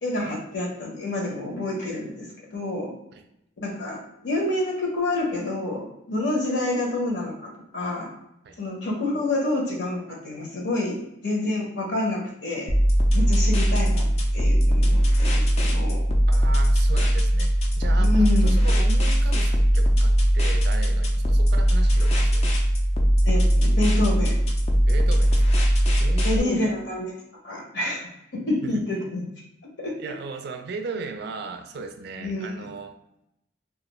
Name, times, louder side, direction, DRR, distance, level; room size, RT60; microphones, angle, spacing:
voice 1, 0.0-2.9 3.6-8.1 8.6-12.7 13.1-16.1 18.0-18.5 23.2-24.4 26.2-27.1 27.4-29.3 29.8-30.2 32.2-32.7, left 2 dB, 65° left, -1 dB, 0.8 m, -28 dB
sound 1, 12.7-26.4, equal, 35° left, 0.4 m, -20 dB
voice 2, 16.3-22.5 24.9-26.8 28.6-28.8 30.0-33.0, right 4 dB, 55° right, 6 dB, 0.3 m, -37 dB
2.4 x 2.3 x 2.9 m, 0.82 s
head